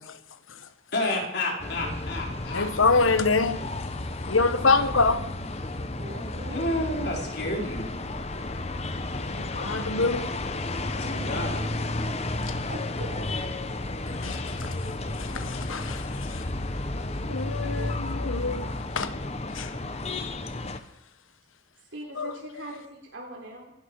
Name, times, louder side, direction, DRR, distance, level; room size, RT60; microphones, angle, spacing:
voice 1, 0.9-3.1 6.5-7.9 10.9-11.6 17.7-17.9, left 1 dB, 50° left, 4.4 m, -30 dB
sound 1, 1.6-20.8, left 2 dB, 30° left, 1.0 m, -32 dB
voice 2, 2.5-3.6 4.3-5.3 9.2-10.3 14.1-16.4 17.3-19.1 19.5-19.8 22.2-22.3, left 4 dB, 80° left, 1.3 m, -26 dB
voice 3, 5.9-6.6 12.7-13.6 21.8-23.7, right 1 dB, 70° right, 3.6 m, -42 dB
25.5 x 11.5 x 4.8 m
head